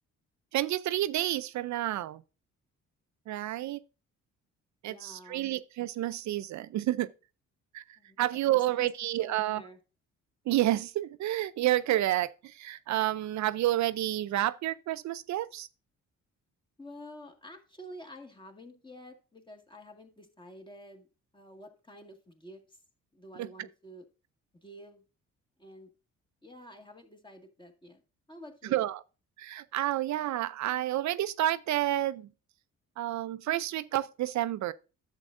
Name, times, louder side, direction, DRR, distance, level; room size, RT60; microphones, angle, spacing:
voice 1, 0.5-2.2 3.3-3.8 4.8-7.1 7.7-7.8 8.2-9.6 10.5-15.7 23.4-23.5 28.7-29.0 29.4-32.3 33.0-34.7, right 14 dB, 65° right, 0.5 m, -29 dB
voice 2, 4.9-5.5 8.0-8.2 8.5-8.9 9.2-9.8 16.8-21.1 21.3-22.8 23.1-24.1 24.5-25.0 25.6-25.9 26.4-28.0 28.3-28.8, equal, 15° left, 1.8 m, -49 dB
10.5 x 7.4 x 2.5 m
cardioid pair, 90°, 30 cm